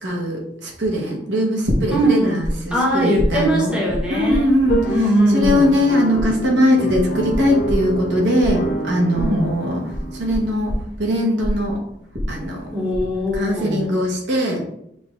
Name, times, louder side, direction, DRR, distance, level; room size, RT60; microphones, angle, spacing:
voice 1, 0.0-3.7 4.1-4.9 5.3-10.7 11.0-11.8 12.3-12.8 13.3-14.6, equal, 85° right, -1 dB, 1.3 m, -20 dB
sound 1, 1.7-2.5 2.8-5.1 5.4-13.0 13.3-13.8, equal, 65° right, 1.2 m, -26 dB
voice 2, 1.9-2.4 2.7-4.5 4.9-5.6 9.1-9.5 12.7-13.9, equal, 5° right, -5 dB, 1.3 m, -20 dB
sound 2, 4.6-10.5, right 2 dB, 55° left, 0.6 m, -27 dB
5.8 x 2.6 x 3.4 m, 0.75 s
head